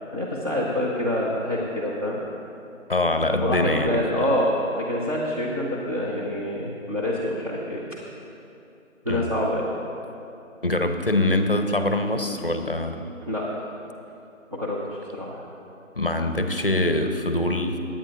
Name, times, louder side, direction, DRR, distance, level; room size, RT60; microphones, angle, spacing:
voice 1, 0.1-2.2 3.4-7.9 9.0-9.7 13.3-13.5 14.5-15.4, left 1 dB, 25° right, -6 dB, 0.8 m, -26 dB
voice 2, 2.9-4.0 9.1-9.3 10.6-13.1 16.0-17.8, left 1 dB, 45° left, 6 dB, 0.7 m, -23 dB
20.0 x 8.8 x 2.4 m, 2.8 s
figure-of-eight pair, 165°, 41 cm